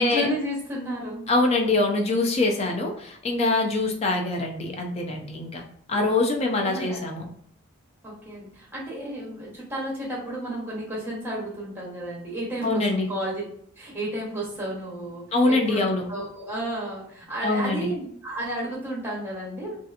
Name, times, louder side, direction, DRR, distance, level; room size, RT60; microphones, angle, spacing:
voice 1, 0.0-1.3 6.5-7.0 8.0-13.4 13.8-15.8 16.1-19.8, right 1 dB, 10° right, -4 dB, 0.9 m, -32 dB
voice 2, 1.3-5.6 5.9-7.2 12.6-13.1 15.3-16.0 17.4-17.9, left 2 dB, 30° left, 2 dB, 0.4 m, -24 dB
2.7 x 2.4 x 2.4 m, 0.65 s
head